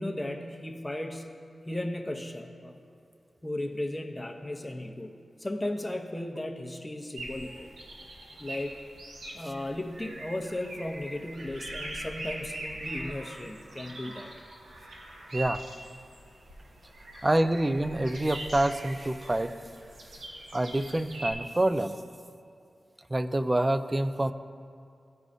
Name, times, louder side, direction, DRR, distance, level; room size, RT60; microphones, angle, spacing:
voice 1, 0.0-1.3 1.6-2.8 3.4-5.1 5.4-7.7 8.4-8.8 9.3-14.3 17.1-17.3, left 1 dB, 15° left, 3 dB, 0.8 m, -35 dB
sound 1, 7.2-21.3, right 1 dB, 90° right, 0.9 m, -42 dB
voice 2, 17.2-19.5 20.5-22.0 23.1-24.3, right 1 dB, 25° right, 11 dB, 0.4 m, -26 dB
14.0 x 4.8 x 2.6 m, 2.5 s
cardioid pair, 50°, 0 cm